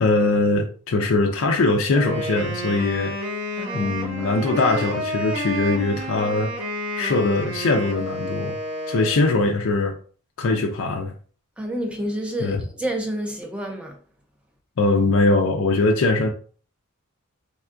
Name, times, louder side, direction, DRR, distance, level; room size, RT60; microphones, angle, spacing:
voice 1, 0.0-3.1 3.7-6.5 7.0-8.6 8.9-10.0 10.4-11.1 12.4-12.6 14.8-16.3, left 3 dB, 65° left, 0.4 m, -21 dB
Wind instrument woodwind instrument, 1.9-9.5, equal, 65° right, 1.1 m, -30 dB
voice 2, 3.6-4.3 11.6-14.0, right 1 dB, 5° right, 0.5 m, -29 dB
3.5 x 2.3 x 2.5 m
head